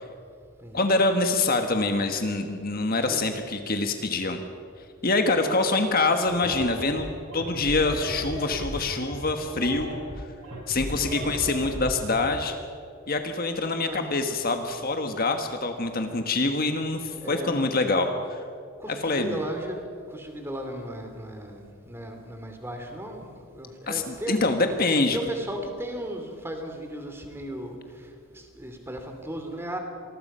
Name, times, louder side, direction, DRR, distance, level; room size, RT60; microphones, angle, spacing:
voice 1, 0.7-4.4 5.0-9.9 10.7-12.6 13.1-18.4 18.9-19.4 23.9-25.2, left 3 dB, 45° left, 6 dB, 1.4 m, -25 dB
voice 2, 5.2-5.6 11.0-11.4 13.8-14.2 17.1-17.5 18.8-24.4 25.1-29.8, right 1 dB, 10° right, 4 dB, 2.8 m, -36 dB
sound 1, 6.3-12.3, equal, 65° right, 7.6 m, -35 dB
27.0 x 20.5 x 5.6 m, 2.4 s
head